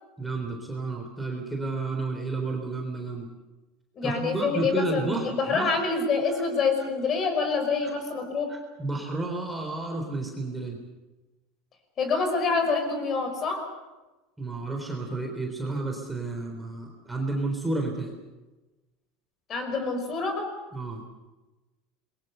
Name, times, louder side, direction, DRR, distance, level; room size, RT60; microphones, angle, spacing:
voice 1, 0.2-3.3 4.0-5.7 7.8-7.9 8.5-10.8 14.4-18.1 20.7-21.1, right 2 dB, 5° right, 1 dB, 3.7 m, -31 dB
voice 2, 4.0-8.5 12.0-13.7 19.5-20.6, left 4 dB, 30° left, 6 dB, 5.3 m, -26 dB
27.0 x 22.5 x 6.9 m, 1.1 s
supercardioid pair, 155°, 0 cm